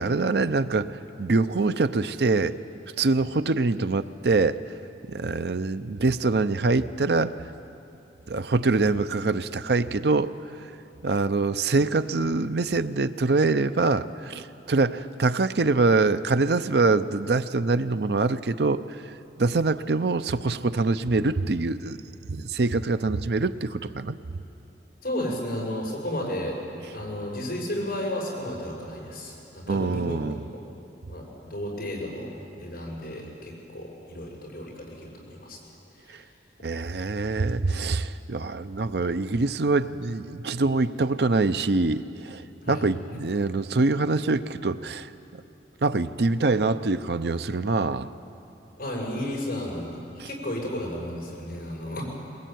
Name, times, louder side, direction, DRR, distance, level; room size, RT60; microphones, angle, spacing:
voice 1, 0.0-2.6 3.0-4.6 5.1-7.3 8.3-10.3 11.0-18.8 19.4-22.0 22.3-24.2 29.7-30.4 36.1-36.2 36.6-45.1 45.8-48.1 50.2-50.3, right 3 dB, 70° right, 12 dB, 0.7 m, -24 dB
voice 2, 25.0-26.6 26.9-30.2 31.1-35.6 36.1-36.2 42.6-42.8 48.8-52.0, left 1 dB, 55° left, -2 dB, 7.0 m, -33 dB
21.5 x 21.0 x 9.3 m, 2.8 s
head